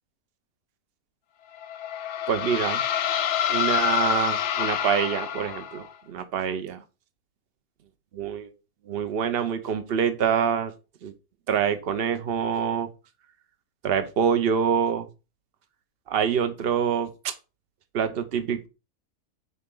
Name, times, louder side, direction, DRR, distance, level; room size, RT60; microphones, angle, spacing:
sound 1, 1.6-5.9, left 10 dB, 65° left, 0.7 m, -27 dB
voice 1, 2.3-2.8 3.5-6.8 8.1-8.5 8.9-10.7 11.0-11.1 11.5-12.9 13.8-15.1 16.1-17.3 17.9-18.7, right 7 dB, 45° right, 9 dB, 0.9 m, -26 dB
6.7 x 4.0 x 3.8 m, 0.29 s
omnidirectional pair, 1.6 m